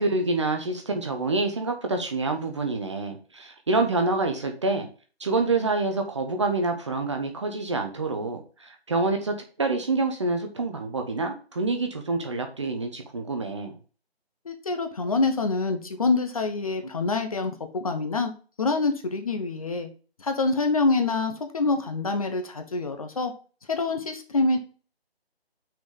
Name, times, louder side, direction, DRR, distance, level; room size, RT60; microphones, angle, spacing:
voice 1, 0.0-4.9 5.2-13.8, right 3 dB, 30° right, 4 dB, 0.9 m, -27 dB
voice 2, 14.4-18.3 18.6-19.9 20.2-23.3 23.7-24.6, left 3 dB, 35° left, 6 dB, 1.0 m, -26 dB
6.1 x 5.0 x 5.3 m, 0.37 s
figure-of-eight pair, 150°, 32 cm